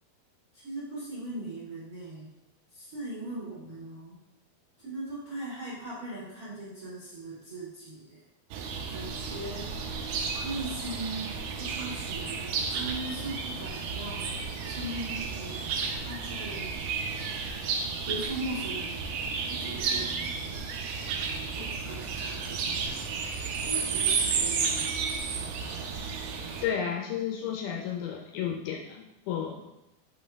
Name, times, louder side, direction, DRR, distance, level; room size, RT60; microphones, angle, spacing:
voice 1, 0.5-2.3 2.7-4.2 4.8-8.2 8.9-9.7 10.4-11.3 11.5-14.3 14.6-16.7 18.0-19.1 19.4-20.3 21.5-24.9, right 2 dB, 30° right, -10 dB, 1.9 m, -39 dB
sound 1, 8.5-26.7, right 5 dB, 85° right, 1.8 m, -32 dB
voice 2, 26.6-29.5, left 8 dB, 80° left, 1 dB, 2.4 m, -32 dB
5.7 x 5.3 x 3.5 m, 0.92 s
omnidirectional pair, 4.6 m